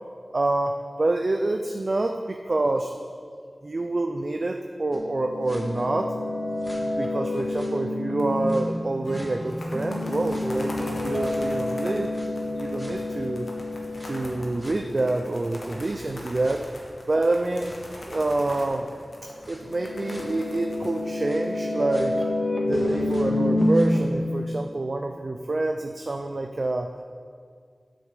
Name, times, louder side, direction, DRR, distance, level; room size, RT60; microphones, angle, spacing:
voice 1, 0.3-2.9 3.6-6.2 6.8-12.1 12.4-13.5 14.0-16.8 17.1-17.7 18.1-18.9 19.2-22.2 22.6-26.9, right 2 dB, 55° right, 4 dB, 0.5 m, -27 dB
sound 1, 4.9-8.8 9.1-15.3 15.8-15.9 16.4-16.5 17.6-17.7 18.5-18.6 19.4-24.0, left 1 dB, 15° left, 1.8 m, -28 dB
sound 2, 8.2-8.6 8.9-9.0 9.3-21.8, left 1 dB, 85° left, 1.5 m, -42 dB
Strum, 9.0-14.4, right 1 dB, 45° left, 1.8 m, -44 dB
7.9 x 6.3 x 6.7 m, 2.1 s
wide cardioid pair, 55°, 0 cm